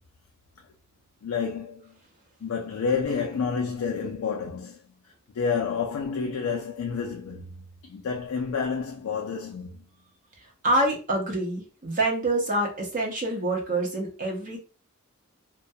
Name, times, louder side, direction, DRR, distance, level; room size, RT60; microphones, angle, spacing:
voice 1, 1.2-1.9 2.4-4.8 5.3-7.5 7.8-9.8, left 5 dB, 85° left, 0.4 m, -29 dB
voice 2, 10.6-14.6, right 1 dB, 40° right, 0.7 m, -26 dB
2.2 x 2.1 x 2.6 m
head